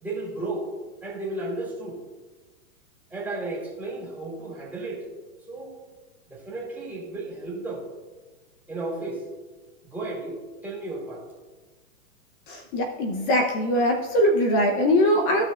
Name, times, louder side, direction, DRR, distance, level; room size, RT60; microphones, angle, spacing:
voice 1, 0.0-0.7 1.0-2.0 3.1-5.1 5.5-5.7 6.3-7.8 8.7-9.2 9.8-10.4 10.6-11.2, right 2 dB, 5° right, -6 dB, 2.5 m, -33 dB
voice 2, 12.5-15.4, equal, 35° left, 3 dB, 0.9 m, -22 dB
15.5 x 6.1 x 2.5 m, 1.3 s
hypercardioid pair, 145°, 43 cm